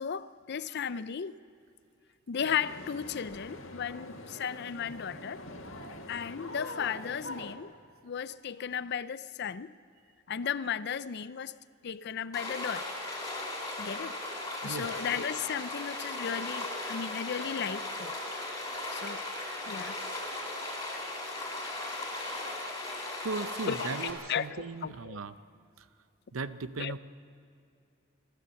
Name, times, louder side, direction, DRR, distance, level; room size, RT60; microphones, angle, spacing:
voice 1, 0.0-1.4 2.3-5.4 6.1-7.7 8.0-9.7 10.3-11.6 11.8-12.9 13.8-14.2 14.6-18.1 18.9-19.2 19.6-20.0 23.7-25.2 26.8-26.9, left 7 dB, 55° left, 16 dB, 0.5 m, -35 dB
sound 1, 2.4-7.6, left 1 dB, 70° left, 1.8 m, -44 dB
Stream, 12.3-24.1, left 2 dB, 15° left, 4.0 m, -37 dB
voice 2, 23.2-25.3 25.8-25.9 26.3-27.0, right 3 dB, 90° right, 12 dB, 0.8 m, -37 dB
29.5 x 13.0 x 7.1 m, 2.5 s
head